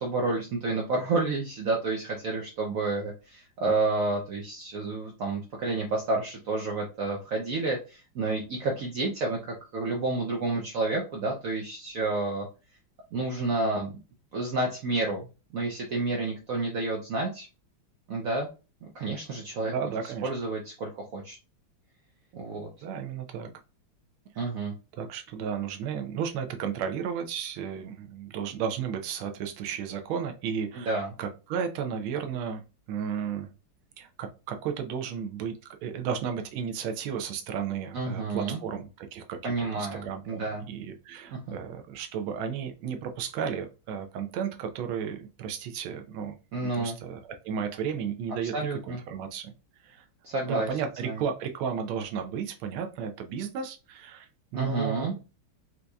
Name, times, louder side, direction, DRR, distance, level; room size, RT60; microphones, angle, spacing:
voice 1, 0.0-12.5 13.1-13.9 14.3-17.5 18.1-18.5 18.9-19.7 20.2-21.4 22.3-22.7 24.4-24.7 30.7-31.1 37.9-38.6 39.4-40.6 41.3-41.6 46.5-47.0 48.5-49.0 50.2-50.7 51.0-51.2 54.5-55.1, right 3 dB, 70° right, 0 dB, 0.8 m, -30 dB
voice 2, 19.6-20.3 22.8-23.5 24.4-24.5 25.0-32.6 32.9-33.5 34.0-35.5 35.8-48.5 48.9-49.5 49.8-50.0 50.4-54.3 54.5-55.2, right 7 dB, 85° right, 5 dB, 1.4 m, -33 dB
4.5 x 2.6 x 2.3 m, 0.30 s
omnidirectional pair, 2.2 m